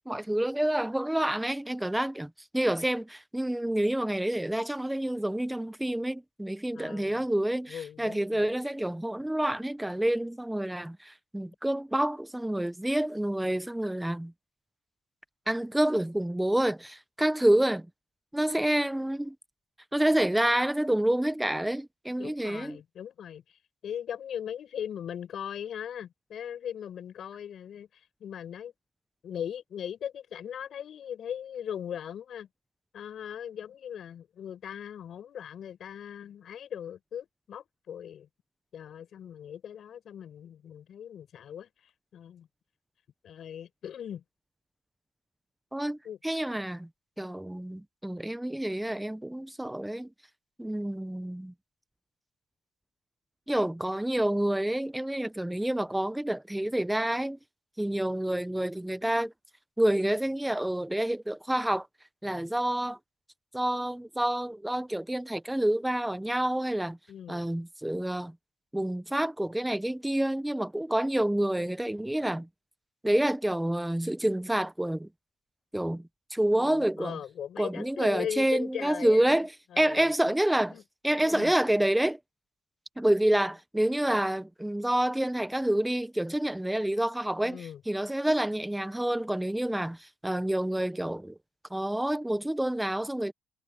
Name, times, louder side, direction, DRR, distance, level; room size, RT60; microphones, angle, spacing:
voice 1, 0.1-14.3 15.5-17.9 18.3-19.3 19.9-22.8 45.7-46.0 46.2-46.9 47.2-50.1 50.6-51.5 53.5-57.4 57.8-59.3 59.8-61.9 62.2-63.0 63.5-67.0 67.3-68.3 68.7-72.5 73.0-75.1 75.7-76.0 76.3-77.2 77.6-79.5 79.8-80.7 81.0-82.2 83.0-91.4 91.7-93.3, right 1 dB, 5° right, 0.8 m, -28 dB
voice 2, 6.7-7.2 7.7-8.5 22.2-28.7 29.2-32.5 32.9-38.3 38.7-42.5 43.2-44.2 46.0-46.2 67.1-67.4 76.5-80.4 80.7-80.8 81.2-81.5 87.4-87.8, left 9 dB, 65° left, 6.6 m, -39 dB
cardioid pair, 90°, 0 cm